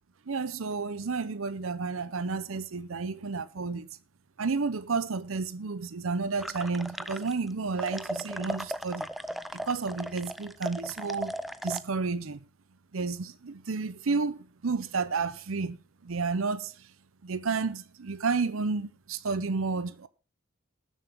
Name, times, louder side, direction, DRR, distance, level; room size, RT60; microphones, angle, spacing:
voice 1, 0.3-3.9 4.4-9.1 9.5-11.4 11.6-12.5 12.9-15.8 16.0-16.9 17.2-20.1, right 4 dB, 75° right, 0.7 m, -31 dB
sound 1, 6.4-7.5 7.8-11.8, equal, ahead, 0.5 m, -36 dB
18.5 x 7.3 x 3.6 m
head